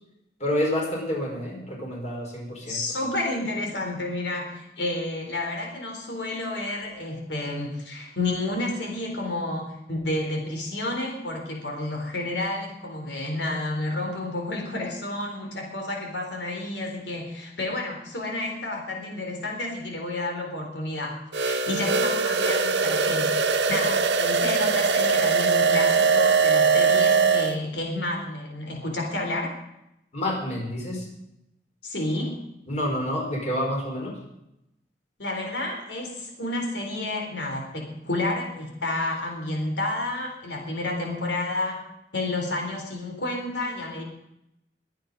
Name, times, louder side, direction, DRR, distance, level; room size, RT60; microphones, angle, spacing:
voice 1, 0.4-2.8 30.1-31.0 32.7-34.1, left 1 dB, 40° left, -1 dB, 5.0 m, -28 dB
voice 2, 2.7-29.6 31.8-32.4 35.2-41.8 42.1-44.0, left 2 dB, 90° left, 2 dB, 4.0 m, -30 dB
sound 1, 21.3-27.5, right 4 dB, 85° right, 1.3 m, -21 dB
23.0 x 8.9 x 5.4 m, 0.83 s
head